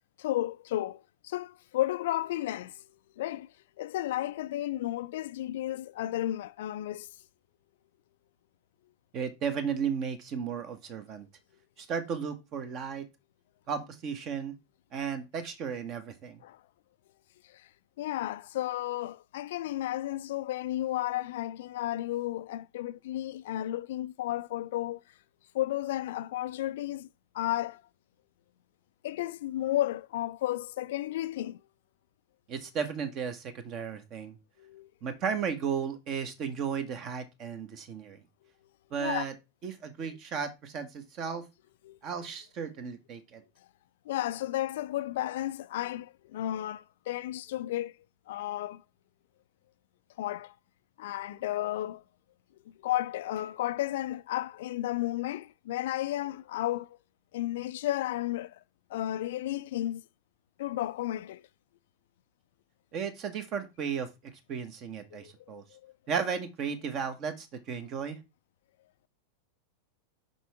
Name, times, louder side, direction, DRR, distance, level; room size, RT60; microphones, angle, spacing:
voice 1, 0.2-2.8 3.2-7.1 16.4-16.6 17.4-17.7 18.0-25.0 25.5-27.1 27.3-27.8 29.0-31.6 34.6-34.9 39.0-39.2 41.8-42.0 44.1-48.0 48.3-48.8 50.2-50.6 51.0-52.0 52.8-57.0 57.3-58.6 58.9-60.0 60.6-61.5 65.1-65.9, left 14 dB, 55° left, 0.4 m, -33 dB
voice 2, 9.1-11.3 11.8-13.1 13.7-14.5 14.9-16.4 32.5-34.4 35.0-38.2 38.9-39.3 39.6-41.4 42.0-43.4 62.9-64.1 64.5-65.6 66.1-68.2, right 6 dB, 35° right, 1.3 m, -34 dB
5.9 x 5.4 x 3.5 m
figure-of-eight pair, 90°, 0 cm